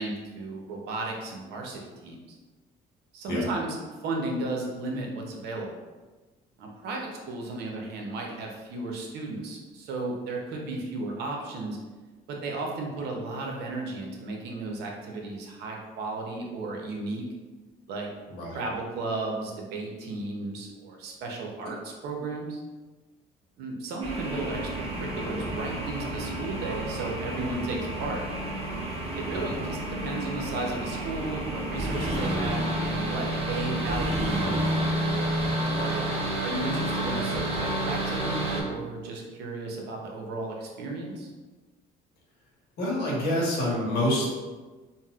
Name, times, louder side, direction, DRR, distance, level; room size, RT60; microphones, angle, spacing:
voice 1, 0.0-2.2 3.1-3.8 4.0-5.8 6.6-11.8 12.3-17.2 17.9-18.1 18.5-22.6 23.6-28.3 29.1-34.8 35.9-36.0 36.4-41.3, right 2 dB, 75° right, 0 dB, 0.7 m, -34 dB
voice 2, 18.3-18.6 29.3-29.6 35.7-36.0 42.8-44.3, left 1 dB, 70° left, -4 dB, 1.2 m, -28 dB
sound 1, 24.0-38.6, right 1 dB, 35° right, 0.7 m, -30 dB
4.0 x 2.0 x 2.3 m, 1.3 s
cardioid pair, 110°, 17 cm